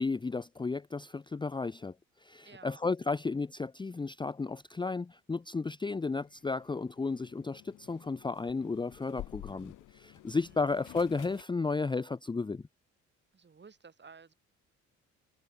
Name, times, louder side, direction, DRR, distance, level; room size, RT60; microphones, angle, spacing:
voice 1, 0.0-1.9 2.2-12.6, left 4 dB, 15° left, 0.6 m, -33 dB
voice 2, 2.4-2.8 10.3-10.6 13.3-14.3, right 5 dB, 35° right, 6.1 m, -54 dB
sound 1, 5.8-11.4, left 16 dB, 90° left, 2.3 m, -51 dB
cardioid pair, 90°, 30 cm